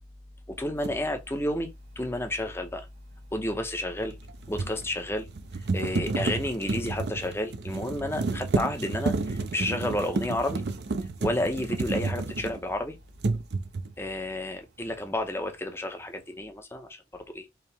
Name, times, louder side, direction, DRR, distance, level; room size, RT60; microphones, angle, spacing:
voice 1, 0.5-2.9 3.3-4.2 4.5-5.3 5.7-10.6 11.2-13.0 14.0-17.5, left 1 dB, 15° left, 0.6 m, -31 dB
sound 1, 0.8-1.0 4.1-12.8 13.2-14.0, right 3 dB, 65° right, 0.5 m, -31 dB
4.6 x 2.1 x 3.4 m
head